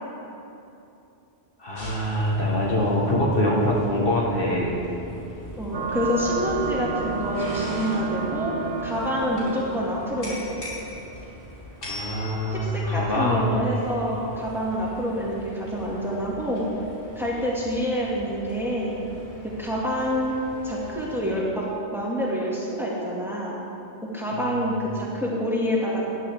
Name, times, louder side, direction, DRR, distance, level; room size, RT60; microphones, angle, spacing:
voice 1, 1.6-4.8 11.8-13.5, left 1 dB, 55° left, -4 dB, 1.7 m, -24 dB
sound 1, 1.7-21.4, left 1 dB, 75° left, 3.1 m, -42 dB
voice 2, 5.6-8.5 8.8-10.4 12.5-16.7 17.2-19.0 19.6-20.4 20.6-21.6 21.9-23.6 24.0-26.1, equal, ahead, -6 dB, 2.0 m, -27 dB
sound 2, 5.7-11.0, right 5 dB, 80° right, 1.2 m, -31 dB
14.0 x 10.5 x 3.6 m, 2.9 s
omnidirectional pair, 1.1 m